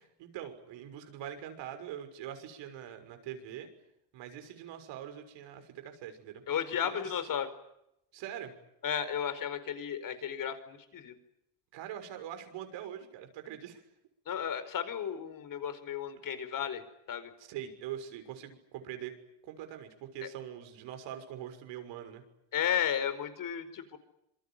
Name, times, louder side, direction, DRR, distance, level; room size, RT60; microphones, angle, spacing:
voice 1, 0.0-3.7 4.1-6.4 6.8-7.1 8.1-8.5 11.7-13.8 17.4-19.1 19.4-22.2, right 10 dB, 65° right, 8 dB, 6.4 m, -43 dB
voice 2, 6.5-7.5 8.8-11.1 14.3-16.8 17.1-17.3 22.5-24.0, left 8 dB, 45° left, 11 dB, 4.9 m, -34 dB
27.5 x 23.0 x 9.1 m, 0.81 s
supercardioid pair, 95°, 46 cm